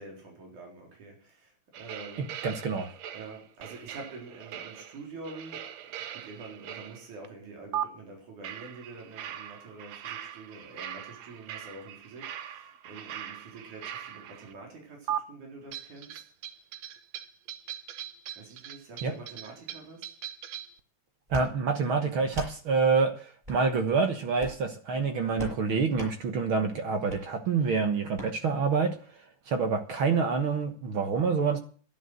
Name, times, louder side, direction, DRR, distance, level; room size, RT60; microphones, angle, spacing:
voice 1, 0.0-2.6 3.1-16.2 18.4-20.1, right 3 dB, 90° right, 1 dB, 5.4 m, -46 dB
sound 1, 1.7-7.3 7.7-7.8 8.4-14.5 15.1-15.2 15.7-20.8, right 11 dB, 70° right, 2.1 m, -40 dB
voice 2, 2.4-2.9 19.0-19.1 21.3-28.9 29.5-31.6, right 5 dB, 50° right, 7 dB, 1.9 m, -27 dB
sound 2, 21.3-21.5 22.3-22.5 23.4-23.6 24.3-24.7 25.4-25.6 25.9-26.1 27.1-27.2 28.1-28.3, right 2 dB, 15° right, 6.4 m, -38 dB
11.0 x 11.0 x 7.8 m, 0.41 s
omnidirectional pair, 3.4 m